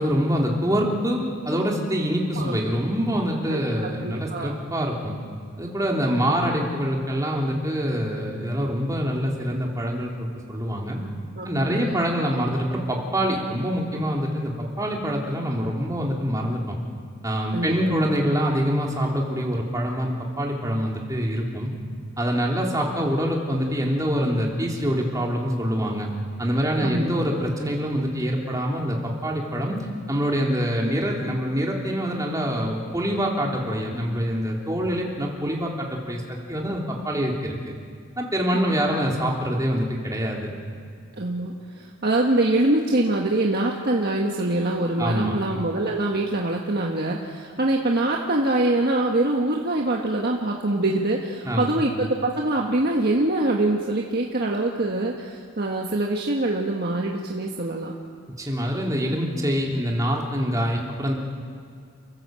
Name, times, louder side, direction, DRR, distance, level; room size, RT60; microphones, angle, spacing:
voice 1, 0.0-5.2 5.6-11.1 11.4-16.8 17.2-21.7 22.2-26.1 26.4-37.5 38.2-40.6 45.0-45.4 51.4-51.8 58.4-61.1, equal, 15° right, -1 dB, 3.3 m, -25 dB
voice 2, 3.5-4.6 11.4-12.0 17.5-18.0 26.8-27.1 38.5-38.8 41.2-57.9, right 2 dB, 50° right, 0 dB, 1.6 m, -24 dB
29.5 x 15.0 x 7.7 m, 2.2 s
head